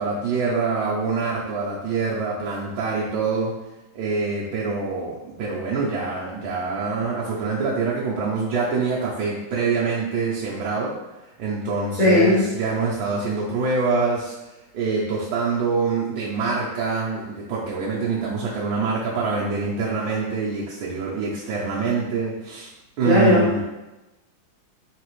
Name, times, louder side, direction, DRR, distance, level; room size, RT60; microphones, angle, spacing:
voice 1, 0.0-3.5 3.9-10.9 11.4-14.4 14.7-22.7 23.0-23.6, right 4 dB, 75° right, -6 dB, 1.4 m, -25 dB
voice 2, 12.0-12.4 23.0-23.5, left 2 dB, 25° left, -11 dB, 1.5 m, -16 dB
4.0 x 3.3 x 3.1 m, 1.0 s
omnidirectional pair, 2.3 m